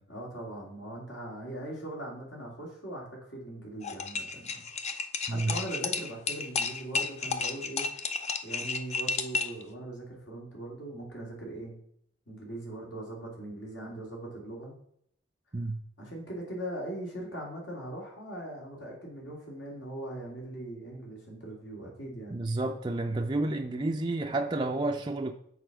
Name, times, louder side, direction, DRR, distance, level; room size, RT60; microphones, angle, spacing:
voice 1, 0.1-4.6 5.3-8.0 8.4-11.7 12.3-14.8 16.0-22.4, right 1 dB, 70° left, 2.6 m, -40 dB
sound 1, 3.8-9.6, left 4 dB, 35° left, 0.6 m, -32 dB
voice 2, 22.3-25.3, right 2 dB, 25° right, 0.4 m, -30 dB
6.8 x 4.3 x 5.9 m
head